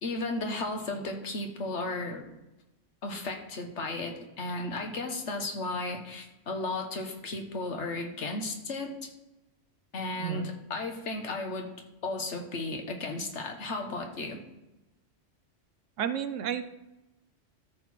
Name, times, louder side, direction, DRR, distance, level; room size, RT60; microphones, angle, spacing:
voice 1, 0.0-2.2 3.0-9.1 9.9-11.7 12.0-14.4, left 2 dB, 65° left, 3 dB, 1.5 m, -34 dB
voice 2, 16.0-16.7, right 9 dB, 80° right, 10 dB, 1.0 m, -31 dB
13.5 x 4.6 x 4.2 m, 0.98 s
omnidirectional pair, 1.3 m